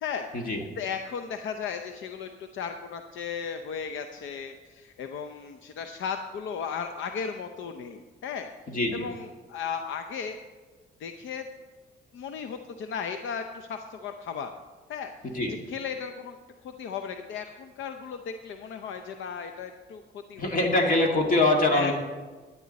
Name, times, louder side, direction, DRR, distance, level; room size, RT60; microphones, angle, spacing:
voice 1, 0.8-8.5 8.9-10.4 11.0-11.4 12.1-14.5 14.9-15.1 15.7-16.4 16.6-20.0 20.3-20.9 21.7-21.9, left 6 dB, 75° left, 7 dB, 0.7 m, -35 dB
voice 2, 8.7-9.1 15.2-15.5 20.4-21.9, left 2 dB, 45° left, 2 dB, 2.0 m, -24 dB
12.0 x 9.6 x 4.1 m, 1.3 s
cardioid pair, 90°, 20 cm